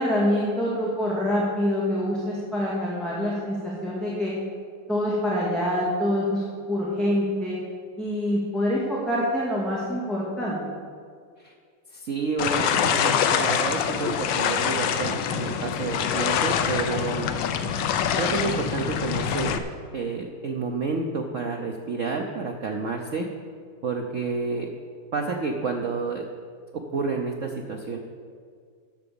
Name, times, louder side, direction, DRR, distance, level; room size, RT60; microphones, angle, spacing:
voice 1, 0.0-4.3 4.9-7.6 8.0-10.5, equal, ahead, -7 dB, 1.8 m, -25 dB
voice 2, 11.9-17.3 18.2-19.6 19.9-23.3 23.8-24.7 25.1-26.3 26.7-28.0, right 4 dB, 70° right, 2 dB, 0.7 m, -29 dB
sound 1, 12.4-19.6, left 8 dB, 70° left, 1.3 m, -25 dB
11.0 x 6.9 x 6.9 m, 2.1 s
omnidirectional pair, 2.3 m